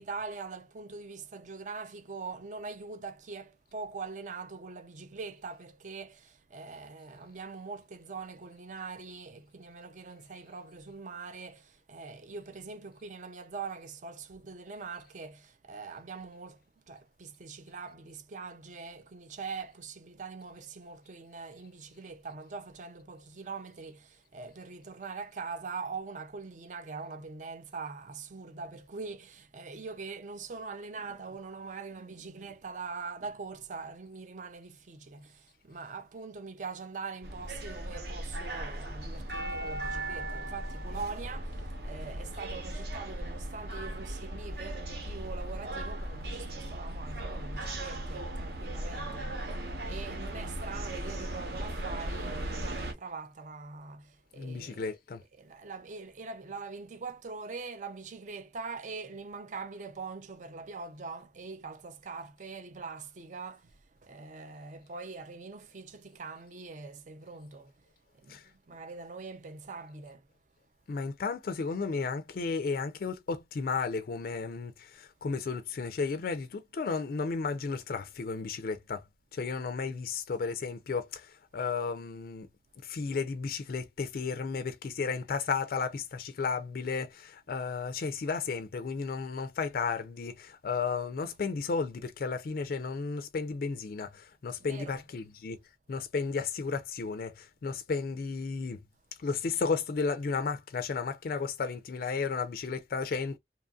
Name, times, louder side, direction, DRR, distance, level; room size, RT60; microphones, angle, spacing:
voice 1, 0.0-54.9 55.3-63.7 64.0-67.7 68.1-70.2 94.6-95.0, right 4 dB, 45° right, 0.4 m, -43 dB
sound 1, 37.2-52.9, right 1 dB, 60° right, 0.9 m, -37 dB
voice 2, 54.4-55.2 68.3-68.4 70.9-79.0 79.3-82.5 82.8-95.6 95.9-98.8 99.2-103.4, left 4 dB, 55° left, 0.3 m, -33 dB
2.9 x 2.4 x 2.3 m
head